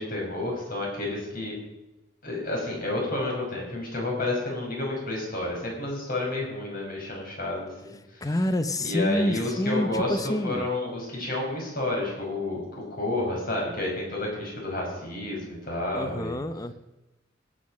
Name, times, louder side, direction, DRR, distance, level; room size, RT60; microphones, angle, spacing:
voice 1, 0.0-1.5 2.2-8.3 8.8-16.4, left 2 dB, 50° left, -1 dB, 5.6 m, -30 dB
voice 2, 8.2-10.7 15.9-16.7, left 1 dB, 20° left, 12 dB, 0.7 m, -27 dB
17.5 x 7.6 x 6.2 m, 1.0 s
head